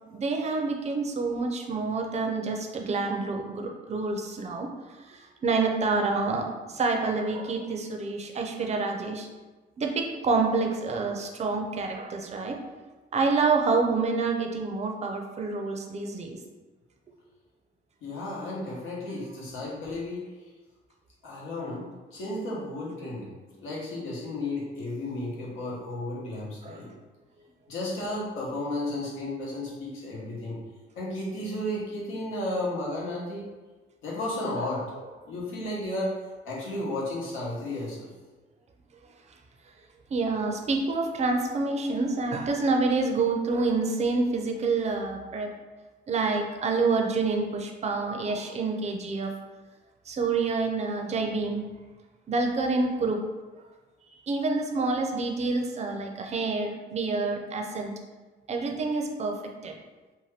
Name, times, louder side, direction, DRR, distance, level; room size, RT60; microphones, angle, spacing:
voice 1, 0.1-4.7 5.1-9.3 9.8-12.6 13.1-16.4 21.6-21.8 26.6-26.8 40.1-45.5 46.1-49.3 50.1-51.7 52.3-53.2 54.3-57.9 58.5-59.4 59.6-59.8, right 3 dB, 35° right, 3 dB, 0.5 m, -27 dB
voice 2, 18.0-20.2 21.2-26.9 27.7-30.6 31.0-33.5 34.0-34.9 35.3-38.1, left 1 dB, 85° left, -5 dB, 0.9 m, -33 dB
2.7 x 2.2 x 3.3 m, 1.2 s
cardioid pair, 90°, 20 cm